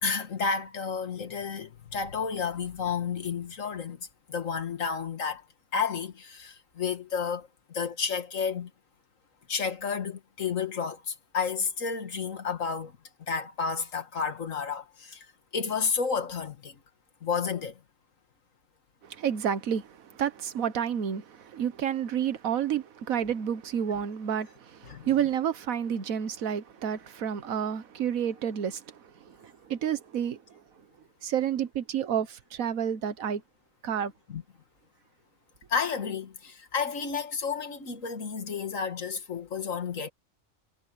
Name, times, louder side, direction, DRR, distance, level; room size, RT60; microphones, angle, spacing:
voice 1, 0.0-4.0 4.3-5.4 5.7-8.7 9.5-12.9 13.3-15.3 15.5-16.8 17.2-17.7 24.9-25.1 34.3-34.4 35.7-40.1, left 6 dB, 70° left, 2.0 m, -31 dB
voice 2, 19.2-19.9 20.2-28.8 29.4-30.4 31.2-33.4 33.8-34.1, right 9 dB, 90° right, 1.5 m, -30 dB
omnidirectional pair, 1.4 m